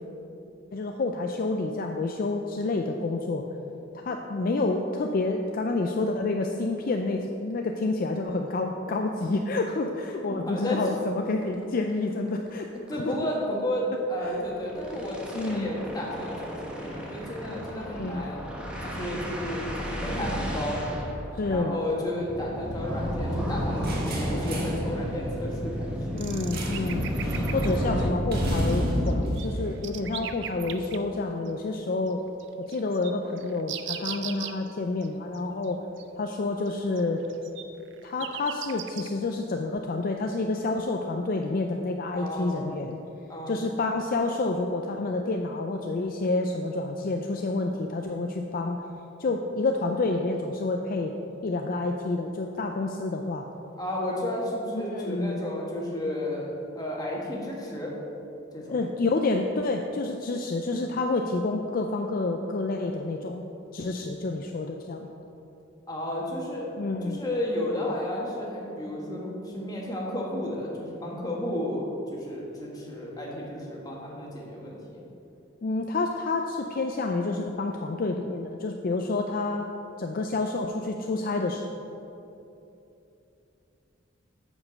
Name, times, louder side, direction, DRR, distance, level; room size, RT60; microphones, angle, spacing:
voice 1, 0.7-3.4 4.0-12.7 12.9-13.1 14.3-14.4 15.3-15.7 17.8-18.2 21.4-21.8 26.1-27.1 27.5-32.2 32.7-35.8 36.2-37.2 38.0-43.0 43.5-48.8 49.2-51.1 51.4-53.5 54.7-55.4 58.7-63.4 63.7-65.1 66.8-67.2 75.6-79.6 80.0-81.6, left 3 dB, 45° left, 3 dB, 0.4 m, -29 dB
voice 2, 10.3-10.8 12.9-18.4 18.8-20.8 21.4-23.9 24.2-25.9 42.1-42.7 43.3-43.6 53.8-56.5 56.7-57.9 58.5-58.7 65.9-66.7 67.0-75.0, left 1 dB, 20° left, -3 dB, 1.6 m, -32 dB
sound 1, 11.4-11.5 11.9-12.0 12.3-12.5 12.8-12.9 14.2-28.1, equal, 5° right, 1.1 m, -32 dB
sound 2, 23.8-24.9 26.5-26.9 27.2-27.5 28.3-30.6, equal, 50° right, 1.7 m, -30 dB
sound 3, 26.2-28.1 28.3-28.7 29.1-31.0 31.5-31.6 32.1-32.2 32.4-34.7 35.0-35.1 35.3-35.4 35.6-35.7 36.0-36.4 36.7-39.1, right 10 dB, 65° right, 0.5 m, -38 dB
8.5 x 5.2 x 6.4 m, 2.9 s
head